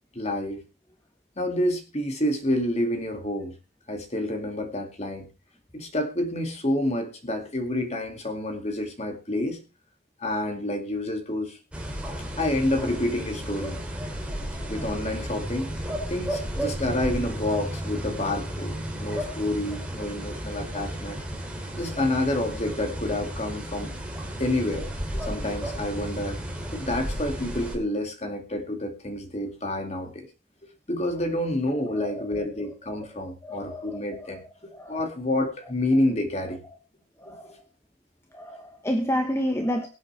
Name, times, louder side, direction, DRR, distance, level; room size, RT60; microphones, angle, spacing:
voice 1, 0.1-0.6 1.4-3.5 3.9-5.3 5.7-9.6 10.2-11.6 12.4-13.8 14.7-21.2 21.8-23.9 24.4-26.4 26.7-30.3 30.9-34.4 34.9-36.6 37.3-37.6, left 1 dB, 35° left, 2.2 m, -28 dB
sound 1, 11.7-27.8, equal, 5° right, 2.8 m, -33 dB
voice 2, 33.4-34.0 34.8-35.0 37.2-37.5 38.3-39.9, equal, 15° left, 1.1 m, -29 dB
22.5 x 8.1 x 3.3 m
head